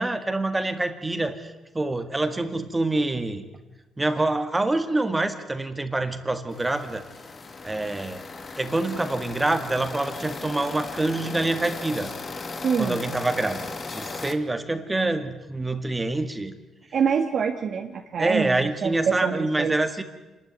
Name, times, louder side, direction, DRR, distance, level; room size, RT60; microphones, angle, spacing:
voice 1, 0.0-3.4 4.0-7.0 7.6-8.2 8.6-12.1 12.8-16.6 18.2-20.0, right 2 dB, 15° right, 8 dB, 1.8 m, -26 dB
sound 1, 6.5-14.3, left 3 dB, 35° left, 1.9 m, -37 dB
voice 2, 12.6-13.0 16.9-19.7, right 6 dB, 60° right, 3 dB, 1.6 m, -25 dB
27.0 x 13.0 x 9.5 m, 1.1 s
cardioid pair, 90°, 0 cm